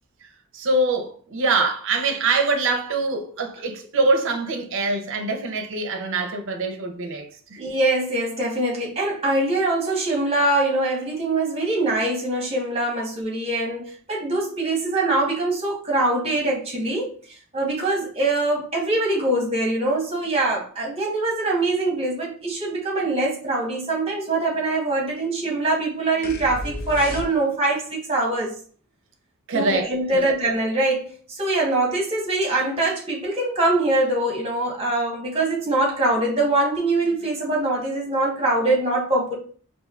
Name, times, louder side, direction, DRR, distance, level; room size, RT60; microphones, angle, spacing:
voice 1, 0.5-7.6 29.5-30.4, right 3 dB, 60° right, 0.6 m, -24 dB
voice 2, 7.6-17.1 17.5-28.5 29.5-39.3, right 2 dB, 25° right, 1.1 m, -23 dB
sound 1, 26.2-27.8, left 1 dB, 45° left, 0.5 m, -33 dB
4.3 x 2.6 x 2.3 m
head